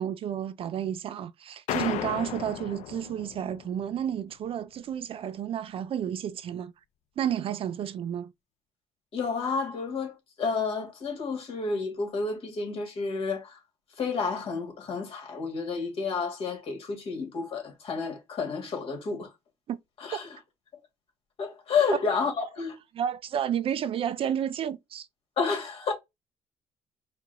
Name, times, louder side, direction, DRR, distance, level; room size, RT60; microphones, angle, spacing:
voice 1, 0.0-6.7 7.2-8.3 19.7-19.8 20.1-20.2 22.4-22.5 22.9-25.1, right 9 dB, 50° right, 0.4 m, -31 dB
sound 1, 1.7-4.1, left 11 dB, 70° left, 0.6 m, -35 dB
voice 2, 9.1-13.6 14.0-19.3 20.0-20.4 21.4-22.8 25.4-25.9, left 4 dB, 50° left, 2.2 m, -30 dB
4.6 x 2.5 x 4.0 m
cardioid pair, 125°, 12 cm